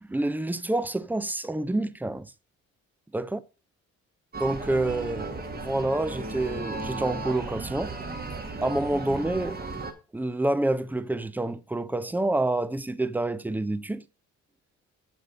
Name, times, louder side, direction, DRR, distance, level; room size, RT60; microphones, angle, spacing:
voice 1, 0.1-2.3 3.1-3.4 4.4-7.9 8.6-9.6 10.1-14.0, right 2 dB, 5° right, 0.5 m, -28 dB
sound 1, 4.3-9.9, right 3 dB, 30° right, 1.5 m, -35 dB
7.7 x 6.8 x 5.1 m
cardioid pair, 90°, 30 cm